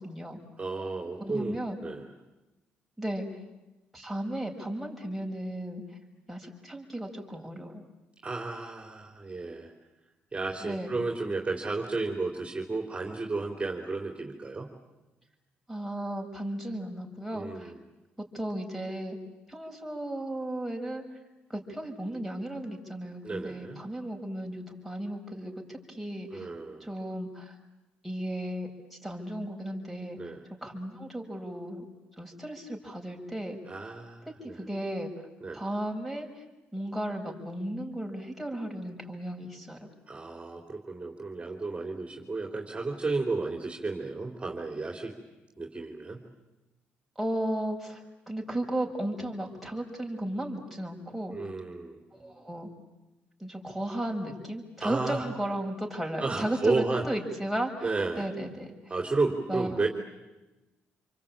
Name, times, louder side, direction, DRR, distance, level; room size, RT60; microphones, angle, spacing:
voice 1, 0.0-0.4 1.2-1.8 3.0-3.3 3.9-5.8 6.3-7.8 10.6-10.9 15.7-17.7 18.2-19.2 19.5-21.0 21.5-26.5 26.8-27.6 28.0-30.3 30.6-31.8 32.2-33.6 34.3-35.1 35.5-36.4 36.7-39.8 47.1-51.3 52.1-52.7 53.4-58.7 59.5-59.9, right 1 dB, ahead, 0 dB, 6.7 m, -35 dB
voice 2, 0.6-2.1 8.2-9.7 10.3-14.7 17.3-17.8 23.2-23.8 26.3-26.9 30.2-30.4 33.7-34.5 35.4-35.6 40.1-45.1 45.6-46.2 51.3-52.0 54.8-55.3 56.2-57.1 57.8-58.3 58.9-59.9, right 3 dB, 25° right, 2 dB, 3.7 m, -32 dB
28.0 x 24.0 x 8.9 m, 1.0 s
supercardioid pair, 65°, 4 cm